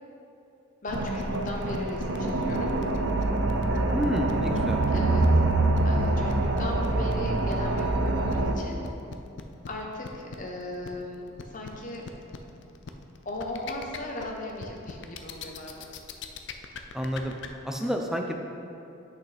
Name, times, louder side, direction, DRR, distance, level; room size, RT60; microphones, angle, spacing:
voice 1, 0.8-2.7 4.9-5.5 5.8-8.8 9.7-12.0 13.2-15.9, left 1 dB, 40° left, 0 dB, 0.9 m, -37 dB
sound 1, 0.9-17.5, left 5 dB, 55° left, 0.4 m, -40 dB
sound 2, 0.9-8.5, right 2 dB, 60° right, 0.5 m, -25 dB
voice 2, 3.9-4.9 16.9-17.3 17.6-18.3, equal, ahead, 2 dB, 0.4 m, -29 dB
8.2 x 6.0 x 3.4 m, 2.7 s
head